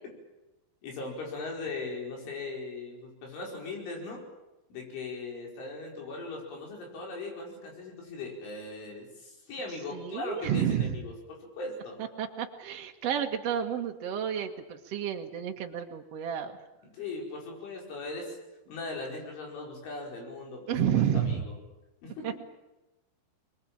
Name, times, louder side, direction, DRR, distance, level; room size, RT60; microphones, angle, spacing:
voice 1, 0.8-4.2 4.7-11.1 11.6-12.0 16.8-18.4 18.7-21.5 22.0-22.3, left 3 dB, 80° left, 0 dB, 7.5 m, -39 dB
voice 2, 9.9-11.0 12.2-16.5 20.7-21.4 22.2-22.3, right 9 dB, 65° right, 4 dB, 1.5 m, -30 dB
24.5 x 21.0 x 8.9 m, 0.99 s
omnidirectional pair, 5.4 m